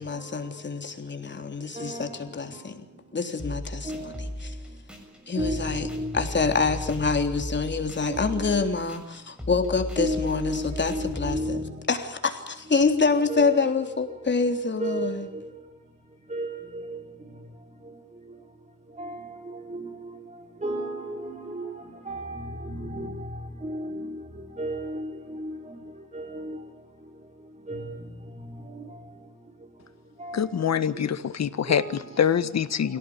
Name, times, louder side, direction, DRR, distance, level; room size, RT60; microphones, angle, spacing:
voice 1, 0.0-2.8 3.1-4.5 5.3-5.9 6.1-15.3, left 4 dB, 40° left, 3.5 m, -26 dB
voice 2, 1.8-2.3 3.8-4.2 5.4-6.3 8.0-8.6 10.0-11.7 13.3-14.0 14.8-15.5 16.3-17.0 19.0-20.1 20.6-24.2 24.6-25.8 26.1-26.6 27.7-28.0 28.7-29.0 30.2-30.5 31.7-31.9, right 1 dB, 25° right, 4.4 m, -33 dB
sound 1, 3.4-11.4, left 1 dB, 5° right, 7.0 m, -37 dB
voice 3, 30.3-33.0, left 8 dB, 65° left, 1.7 m, -25 dB
27.0 x 18.0 x 8.7 m
wide cardioid pair, 120°, 29 cm